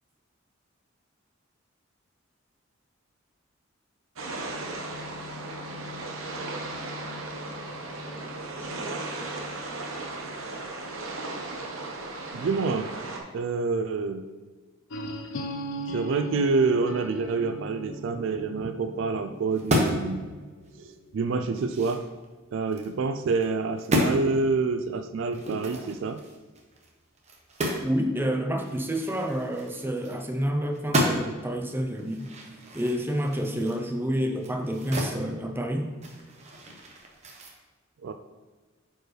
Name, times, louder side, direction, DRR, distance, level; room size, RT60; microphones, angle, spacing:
sound 1, 4.2-13.2, right 2 dB, 80° right, 0.9 m, -36 dB
voice 1, 12.3-12.9 13.3-14.2 15.9-20.3 20.8-22.0 22.5-26.2 38.0-38.1, right 4 dB, 60° right, 8 dB, 0.3 m, -27 dB
sound 2, 14.9-20.7, right 1 dB, 75° left, 0.6 m, -38 dB
sound 3, 19.5-20.1 20.6-20.7 21.2-22.9 23.3-23.5 23.8-24.2 25.3-27.9 28.2-28.3 28.6-30.4 30.7-31.4 31.9-35.2 35.5-37.5, equal, 35° right, 0.9 m, -31 dB
voice 2, 27.8-32.3 32.7-35.9, equal, 10° right, 3 dB, 0.6 m, -28 dB
8.8 x 4.5 x 3.3 m, 1.4 s
head